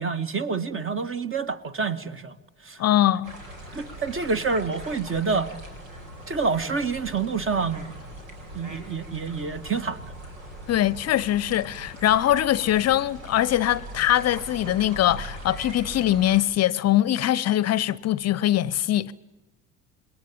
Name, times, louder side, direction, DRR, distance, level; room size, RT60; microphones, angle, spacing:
voice 1, 0.0-2.4 2.6-2.8 3.7-5.5 6.3-7.9 8.5-10.1, right 4 dB, 30° right, 1.9 m, -27 dB
voice 2, 2.8-3.3 10.7-19.1, left 13 dB, 40° left, 0.8 m, -22 dB
sound 1, 3.2-16.4, right 1 dB, 80° right, 4.2 m, -41 dB
27.0 x 22.0 x 8.7 m
figure-of-eight pair, 60°, 40 cm